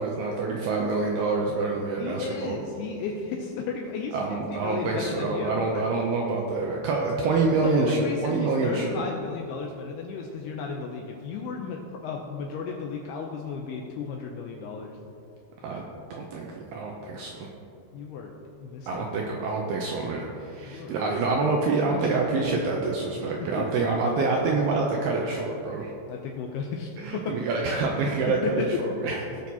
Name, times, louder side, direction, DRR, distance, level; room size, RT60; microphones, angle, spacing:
voice 1, 0.0-2.6 4.1-9.1 15.6-15.8 16.1-17.5 18.9-25.9 27.0-29.4, right 3 dB, 90° right, 0 dB, 2.3 m, -27 dB
voice 2, 2.0-5.8 7.5-15.0 17.9-18.3 18.6-19.1 20.7-21.2 23.6-23.8 26.1-27.4 28.3-28.7, left 5 dB, 85° left, 1 dB, 2.3 m, -34 dB
18.0 x 6.1 x 2.8 m, 2.6 s
omnidirectional pair, 5.3 m